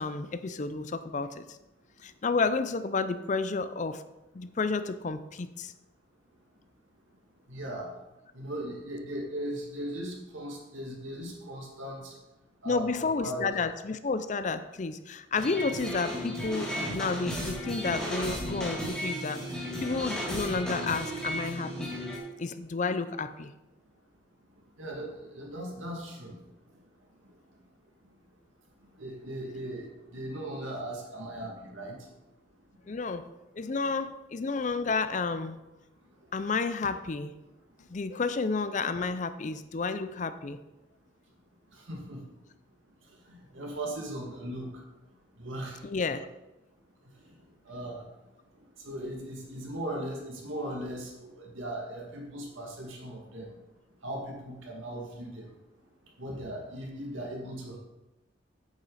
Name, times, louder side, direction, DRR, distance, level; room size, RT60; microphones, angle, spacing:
voice 1, 0.0-1.6 2.0-4.0 4.3-5.7 12.6-21.9 22.4-23.5 32.9-33.3 33.6-35.6 36.3-37.3 37.9-40.6 45.8-46.3, left 4 dB, 40° left, 12 dB, 0.5 m, -31 dB
voice 2, 7.5-7.9 8.3-12.1 12.6-13.5 24.8-26.3 29.0-32.0 41.9-42.2 43.3-44.7 45.4-45.8 47.7-48.1 48.8-53.5 54.0-55.5 56.2-57.8, right 1 dB, 85° right, -1 dB, 2.3 m, -38 dB
sound 1, 15.3-22.2, equal, 5° left, 1.9 m, -34 dB
8.9 x 8.1 x 4.1 m, 1.0 s
head